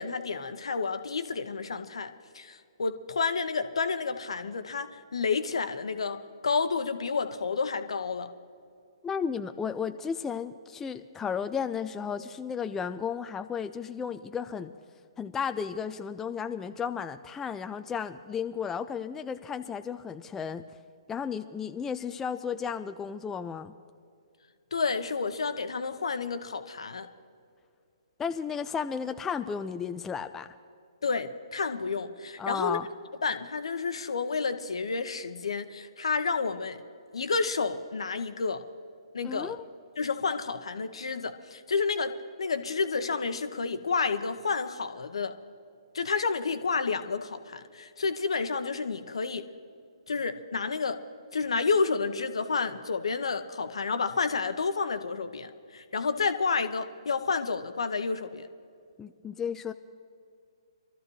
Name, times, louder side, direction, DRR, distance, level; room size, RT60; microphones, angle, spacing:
voice 1, 0.0-8.3 24.7-27.1 31.0-32.8 33.2-36.8 37.1-38.6 39.1-39.6 40.0-45.3 45.9-49.5 50.1-51.0 51.3-58.5, left 4 dB, 70° left, 10 dB, 0.9 m, -30 dB
voice 2, 9.0-14.7 15.2-20.6 21.1-23.7 28.2-30.5 32.4-32.9 39.2-39.6 59.0-59.7, left 6 dB, 10° left, 9 dB, 0.4 m, -33 dB
24.5 x 13.5 x 3.2 m, 2.4 s
figure-of-eight pair, 130°, 3 cm